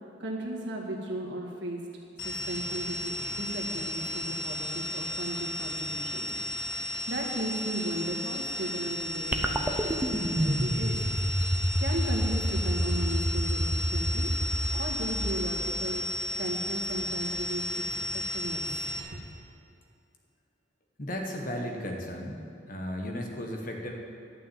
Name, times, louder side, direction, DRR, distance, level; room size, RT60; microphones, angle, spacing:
voice 1, 0.2-1.8 2.2-6.3 6.8-11.0 11.8-14.3 14.7-16.0 16.4-17.8 18.1-18.6 19.1-19.2, right 1 dB, 60° right, -2 dB, 1.9 m, -36 dB
sound 1, 2.2-19.0, left 1 dB, 75° left, 1.5 m, -34 dB
sound 2, 9.3-15.8, equal, 10° right, 0.7 m, -29 dB
voice 2, 21.0-23.9, equal, 45° left, 1 dB, 1.4 m, -35 dB
11.5 x 6.2 x 9.2 m, 2.4 s
head